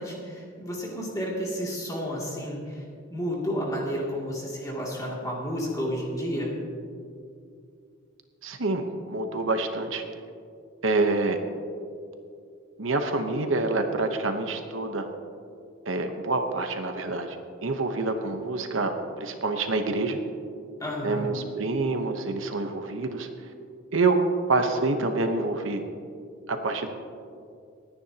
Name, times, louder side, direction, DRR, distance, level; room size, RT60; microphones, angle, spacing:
voice 1, 0.0-2.8 3.1-6.5 20.8-21.4, equal, 15° left, -4 dB, 2.5 m, -31 dB
voice 2, 8.4-10.0 10.8-11.4 12.8-15.1 15.9-17.4 17.6-20.2 21.0-23.3 23.9-24.2 24.5-25.8 26.5-26.9, right 3 dB, 70° right, 6 dB, 1.0 m, -27 dB
28.5 x 9.7 x 2.9 m, 2.4 s
head